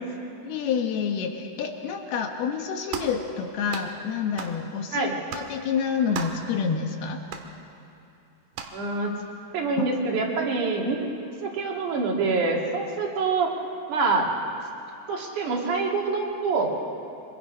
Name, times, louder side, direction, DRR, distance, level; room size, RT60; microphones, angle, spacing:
voice 1, 0.4-7.2 9.8-9.9, left 6 dB, 70° left, 3 dB, 2.8 m, -28 dB
sound 1, 2.9-3.2 3.7-3.9 4.4-4.6 5.3-5.5 6.1-6.5 7.3-7.5 8.5-8.8, right 7 dB, 80° right, 3.6 m, -35 dB
voice 2, 8.7-9.1 9.5-11.1 11.4-13.5 13.9-14.3 15.1-16.7, right 4 dB, 50° right, 0 dB, 3.1 m, -25 dB
26.0 x 24.5 x 5.4 m, 2.8 s
omnidirectional pair, 5.1 m